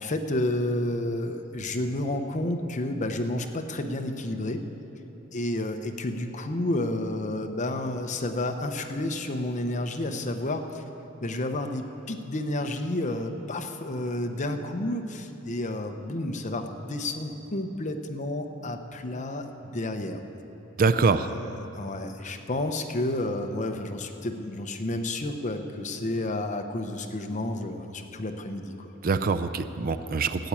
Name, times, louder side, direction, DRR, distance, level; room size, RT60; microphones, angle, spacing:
voice 1, 0.0-4.6 5.3-10.8 11.2-20.2 21.1-21.5 21.8-29.2, left 1 dB, 35° left, 6 dB, 0.8 m, -31 dB
voice 2, 20.8-21.3 29.0-30.5, right 4 dB, 45° right, 10 dB, 0.5 m, -24 dB
13.0 x 8.5 x 9.1 m, 3.0 s
head